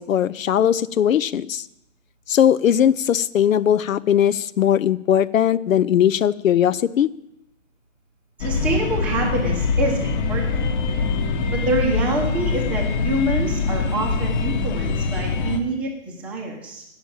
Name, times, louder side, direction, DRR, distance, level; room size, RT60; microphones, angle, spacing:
voice 1, 0.0-1.6 2.3-7.1, left 9 dB, 75° left, 16 dB, 0.5 m, -19 dB
sound 1, 8.4-15.6, left 4 dB, 35° left, 1.2 m, -23 dB
voice 2, 8.4-10.6 11.5-16.8, right 2 dB, 5° right, -2 dB, 0.7 m, -26 dB
8.8 x 7.1 x 8.8 m, 0.84 s
hypercardioid pair, 155°, 40 cm